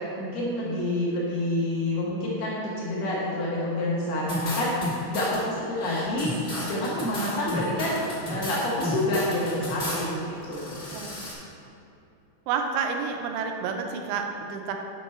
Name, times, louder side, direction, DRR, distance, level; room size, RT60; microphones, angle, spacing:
voice 1, 0.0-6.3 6.6-10.9, left 1 dB, 80° left, -6 dB, 1.9 m, -28 dB
sound 1, 4.3-5.4 5.8-10.1 10.4-11.3, left 1 dB, 60° left, 0.8 m, -33 dB
voice 2, 12.5-14.7, right 6 dB, 80° right, 4 dB, 2.9 m, -29 dB
9.4 x 6.1 x 4.2 m, 2.7 s
omnidirectional pair, 5.6 m